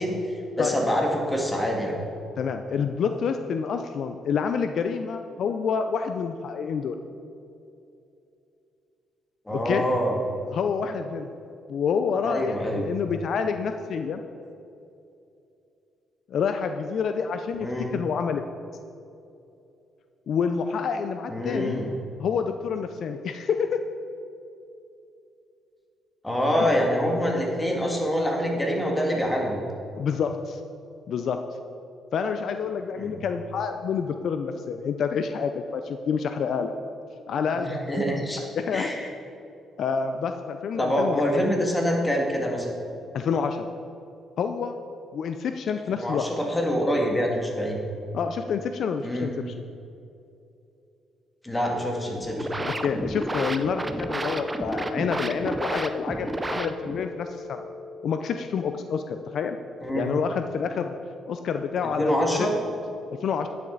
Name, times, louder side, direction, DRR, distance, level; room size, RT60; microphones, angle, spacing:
voice 1, 0.0-1.9 9.5-10.2 12.2-12.9 17.6-17.9 21.3-21.9 26.2-29.6 32.9-33.2 37.5-38.4 38.7-39.1 40.8-42.7 46.0-47.8 49.0-49.3 51.4-52.5 59.8-60.1 62.0-62.5, equal, 15° left, 0 dB, 2.0 m, -25 dB
voice 2, 2.4-7.0 9.5-9.8 10.5-11.3 11.7-14.2 16.3-17.7 17.9-18.4 20.3-21.8 22.2-23.8 26.6-26.7 30.0-30.6 31.1-31.4 32.1-36.7 37.3-39.1 39.8-41.4 43.1-43.7 44.4-44.7 45.1-46.3 48.1-49.7 52.6-57.6 58.0-59.6 59.9-60.9 61.3-62.5 63.2-63.5, left 6 dB, 65° left, 7 dB, 0.5 m, -28 dB
sound 1, 51.6-60.1, left 4 dB, 85° right, 1.2 m, -41 dB
sound 2, 52.2-57.1, right 2 dB, 15° right, 0.6 m, -31 dB
10.0 x 9.3 x 3.9 m, 2.7 s
cardioid pair, 90°, 0 cm